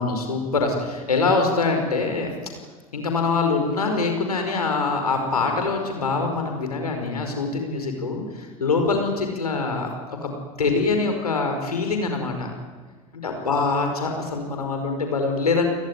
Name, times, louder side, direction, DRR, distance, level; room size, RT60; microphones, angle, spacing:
voice 1, 0.0-2.3 2.9-9.9 10.2-10.3 10.6-12.5 13.1-15.7, left 4 dB, 85° left, 4 dB, 5.0 m, -24 dB
30.0 x 19.0 x 10.0 m, 1.4 s
figure-of-eight pair, 70°, 19 cm